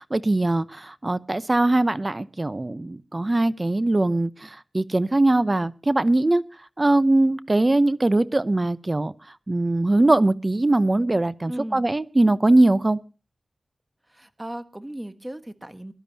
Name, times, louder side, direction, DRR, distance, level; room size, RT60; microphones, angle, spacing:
voice 1, 0.0-6.4 6.8-9.1 9.5-13.0, right 2 dB, 30° right, 0.8 m, -21 dB
voice 2, 11.5-11.9 14.1-15.9, right 1 dB, 15° right, 1.4 m, -36 dB
23.0 x 12.0 x 2.8 m
wide cardioid pair, 70°, 0 cm